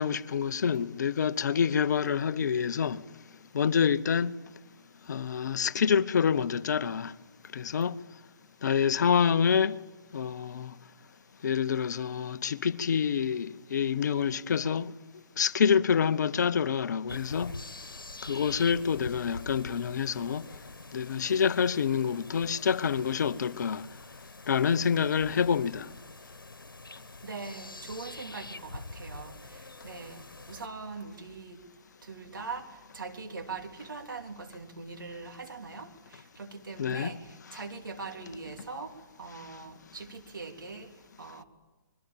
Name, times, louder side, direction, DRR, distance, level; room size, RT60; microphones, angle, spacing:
voice 1, 0.0-3.0 3.5-4.3 5.1-7.1 7.5-7.9 8.6-9.8 10.1-10.7 11.4-14.9 15.4-17.5 18.2-20.4 20.9-23.9 24.5-25.9 36.8-37.1, left 7 dB, 55° left, 0.9 m, -27 dB
sound 1, 17.1-30.7, left 2 dB, 90° left, 1.4 m, -45 dB
voice 2, 27.2-30.2 30.5-31.6 32.0-40.9 41.2-41.4, right 4 dB, 75° right, 3.2 m, -42 dB
26.0 x 22.5 x 8.8 m
figure-of-eight pair, 135°, 11 cm